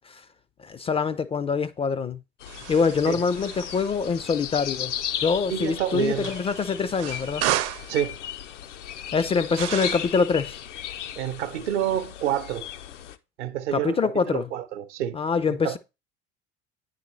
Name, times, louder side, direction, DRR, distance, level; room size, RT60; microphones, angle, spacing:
voice 1, 0.6-2.2 2.7-4.9 5.2-7.5 9.1-10.6 13.7-14.5 15.1-15.8, left 5 dB, 15° left, 0.3 m, -25 dB
sound 1, 2.4-13.2, left 10 dB, 80° left, 0.6 m, -36 dB
sound 2, 2.5-4.0 6.1-7.9 9.5-10.2, right 13 dB, 45° right, 0.6 m, -32 dB
voice 2, 5.5-6.3 7.9-8.2 11.2-12.7 13.4-15.2 15.5-15.8, right 10 dB, 70° right, 0.8 m, -28 dB
9.3 x 4.1 x 3.1 m
figure-of-eight pair, 65°, 36 cm